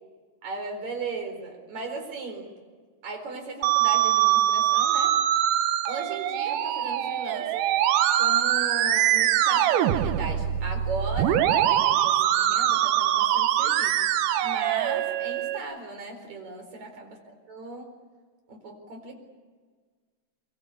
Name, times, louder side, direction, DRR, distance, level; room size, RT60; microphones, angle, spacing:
voice 1, 0.4-2.5 3.0-5.2 5.9-7.7 8.1-14.0 14.4-17.2 17.5-17.9 18.5-19.2, right 3 dB, 60° right, 3 dB, 5.8 m, -37 dB
Musical instrument, 3.6-15.6, right 11 dB, 80° right, 2.5 m, -23 dB
25.0 x 23.0 x 8.4 m, 1.5 s
omnidirectional pair, 3.7 m